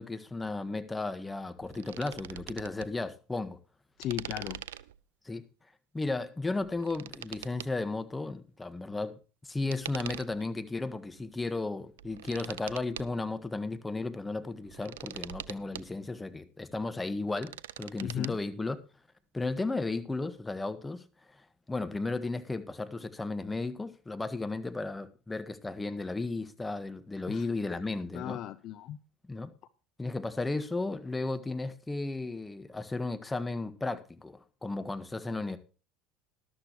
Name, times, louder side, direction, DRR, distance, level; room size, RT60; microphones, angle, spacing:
voice 1, 0.0-3.6 5.2-5.4 5.9-9.2 9.4-18.8 19.3-28.4 29.3-29.5 30.0-35.6, left 3 dB, 15° left, 1.6 m, -34 dB
sound 1, 1.6-2.9 4.0-5.0 6.5-7.7 9.7-10.5 11.2-11.3 11.8-13.2 14.5-15.8 17.1-18.3, right 12 dB, 85° right, 0.5 m, -43 dB
voice 2, 4.0-4.6 18.0-18.4 27.3-27.9 28.1-29.0, left 12 dB, 55° left, 0.7 m, -37 dB
13.5 x 12.5 x 3.1 m
hypercardioid pair, 80°, 0 cm